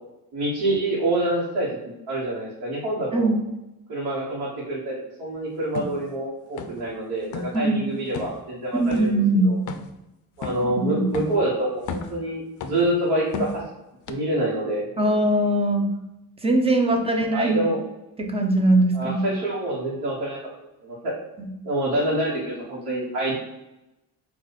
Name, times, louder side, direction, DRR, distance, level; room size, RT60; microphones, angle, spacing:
voice 1, 0.3-3.3 3.9-9.6 10.4-13.6 14.1-14.9 17.3-17.8 18.9-20.4 20.8-21.2 21.6-23.3, right 1 dB, 70° right, -6 dB, 1.3 m, -26 dB
voice 2, 3.1-3.5 7.5-7.8 8.7-9.5 10.6-11.0 15.0-15.9 16.4-17.7 18.2-19.2 21.4-21.5, right 1 dB, 15° right, 3 dB, 0.6 m, -21 dB
sound 1, 5.7-6.0 6.6-6.9 7.2-7.6 8.1-8.4 8.9-9.1 9.7-10.0 10.4-10.7 11.1-11.4 11.8-12.2 12.6-12.9 13.3-13.7 14.1-14.2, left 4 dB, 50° left, 0.5 m, -33 dB
4.1 x 2.6 x 4.0 m, 0.93 s
cardioid pair, 110°, 40 cm